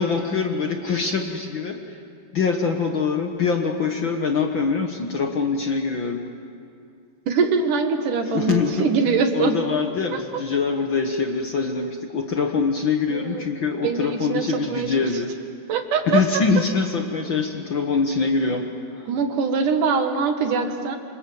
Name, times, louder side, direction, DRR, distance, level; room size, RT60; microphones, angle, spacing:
voice 1, 0.0-1.8 2.3-6.2 8.3-8.9 9.3-15.3 16.1-19.1, left 5 dB, 55° left, 4 dB, 1.4 m, -24 dB
voice 2, 7.3-9.6 10.1-10.2 13.1-13.5 13.8-14.9 15.7-16.2 19.1-21.0, right 5 dB, 70° right, 6 dB, 3.2 m, -23 dB
26.5 x 26.5 x 7.8 m, 2.4 s
omnidirectional pair, 3.8 m